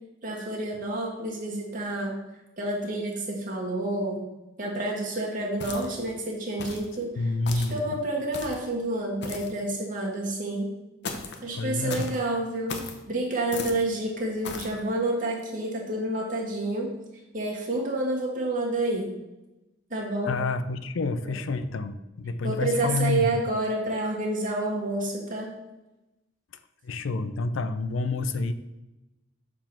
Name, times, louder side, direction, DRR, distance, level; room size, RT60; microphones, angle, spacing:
voice 1, 0.2-2.1 2.6-4.2 4.6-10.7 11.4-12.8 13.0-16.9 17.3-19.1 19.9-20.3 21.2-21.3 22.4-25.5, right 2 dB, 45° right, -2 dB, 1.5 m, -29 dB
sound 1, 5.6-6.1 6.6-6.9 7.5-7.8 8.3-8.7 9.2-9.6 11.0-11.4 11.9-12.2 12.7-13.0 13.5-13.8 14.4-14.7, left 4 dB, 60° left, 0.9 m, -36 dB
voice 2, 7.2-8.0 11.5-12.1 20.3-23.3 26.8-28.5, left 3 dB, 90° left, 11 dB, 0.5 m, -28 dB
6.9 x 3.7 x 5.9 m, 1.0 s
head